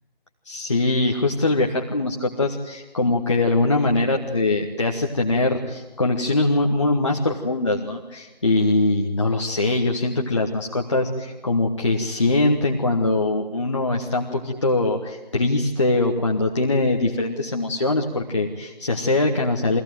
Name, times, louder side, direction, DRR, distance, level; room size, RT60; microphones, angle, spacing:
voice 1, 0.4-19.8, left 2 dB, 30° left, 0 dB, 1.4 m, -22 dB
23.0 x 17.0 x 9.2 m, 1.2 s
figure-of-eight pair, 160°, 29 cm